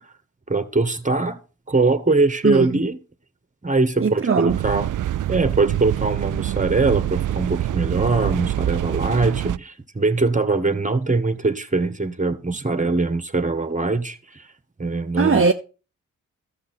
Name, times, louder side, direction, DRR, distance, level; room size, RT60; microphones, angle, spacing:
voice 1, 0.5-1.4 1.7-3.0 3.6-4.9 5.3-14.4 14.8-15.4, right 3 dB, 20° right, 1.6 m, -22 dB
voice 2, 2.4-2.8 4.0-4.6 15.2-15.5, right 5 dB, 40° right, 0.9 m, -19 dB
sound 1, 4.5-9.6, right 12 dB, 65° right, 0.5 m, -25 dB
12.5 x 7.5 x 4.4 m
cardioid pair, 50°, 34 cm